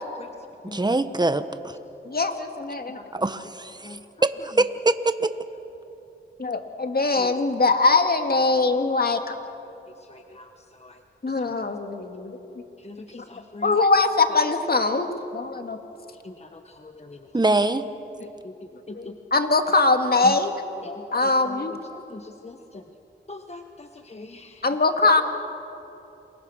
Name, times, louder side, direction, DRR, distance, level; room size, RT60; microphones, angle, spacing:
voice 1, 0.7-1.8 3.1-5.3 17.3-17.9, right 2 dB, 20° right, 11 dB, 1.2 m, -23 dB
voice 2, 2.1-3.0 6.4-9.3 11.2-12.3 13.6-15.1 15.3-15.8 18.9-20.5 21.1-21.7 24.6-25.2, left 3 dB, 45° left, 6 dB, 2.2 m, -22 dB
voice 3, 10.1-10.5 10.8-11.0 11.3-11.5 12.8-13.8 16.2-17.3 18.4-18.5 18.9-19.2 20.2-20.4 20.8-22.8 23.3-24.6, left 2 dB, 30° left, 6 dB, 1.3 m, -41 dB
28.5 x 22.0 x 6.5 m, 2.9 s
cardioid pair, 50°, 21 cm